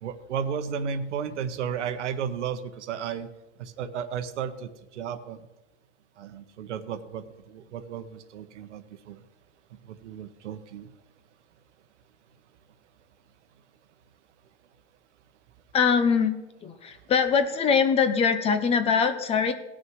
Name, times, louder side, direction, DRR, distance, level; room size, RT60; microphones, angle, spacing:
voice 1, 0.0-3.3 3.6-5.4 6.2-9.2 9.8-10.9, right 7 dB, 90° right, 10 dB, 1.2 m, -34 dB
voice 2, 15.7-19.5, left 6 dB, 15° left, 10 dB, 0.6 m, -23 dB
18.0 x 6.3 x 4.8 m, 1.1 s
supercardioid pair, 150°, 34 cm